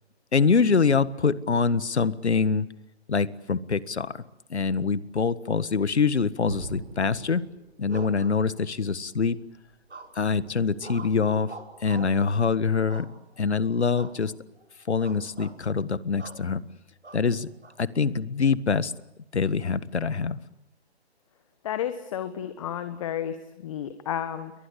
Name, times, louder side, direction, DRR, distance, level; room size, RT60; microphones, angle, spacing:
voice 1, 0.3-2.7 3.1-4.2 4.5-7.4 7.8-9.4 10.1-11.5 11.8-13.1 13.4-14.3 14.9-16.6 17.1-17.5 17.8-18.9 19.3-20.4, left 5 dB, 80° left, 15 dB, 1.6 m, -24 dB
sound 1, 5.9-12.4, right 3 dB, 60° right, 6.2 m, -45 dB
sound 2, 7.9-8.9 9.9-10.4 10.8-12.2 12.9-13.5 13.9-14.2 14.5-14.7 15.0-15.6 16.2-16.4 17.0-17.8, right 3 dB, 90° right, 5.6 m, -44 dB
voice 2, 21.6-23.4 23.6-24.5, left 10 dB, 30° left, 10 dB, 1.5 m, -31 dB
30.0 x 23.0 x 8.4 m, 0.87 s
figure-of-eight pair, 150°, 33 cm